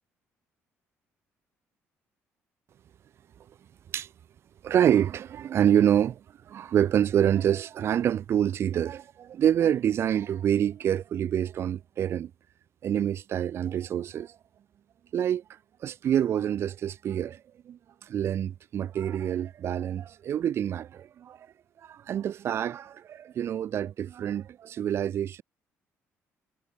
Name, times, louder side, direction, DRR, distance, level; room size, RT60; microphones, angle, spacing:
voice 1, 4.6-12.3 12.8-14.4 15.1-15.4 15.8-21.5 21.8-25.4, right 10 dB, 55° right, 0.8 m, -27 dB
cardioid pair, 115°, 5 cm